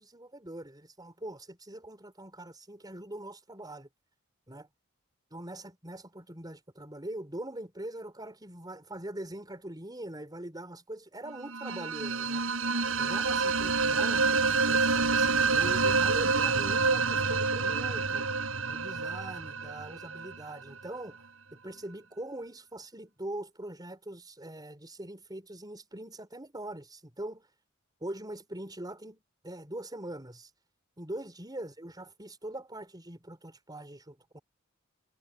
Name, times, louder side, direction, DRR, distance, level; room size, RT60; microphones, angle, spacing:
voice 1, 0.0-3.9 4.5-4.7 5.3-12.4 13.0-18.3 18.7-21.2 21.5-27.5 28.0-30.5 31.0-34.4, right 1 dB, 20° right, 5.5 m, -42 dB
sound 1, 11.5-20.3, right 4 dB, 75° right, 5.4 m, -27 dB
head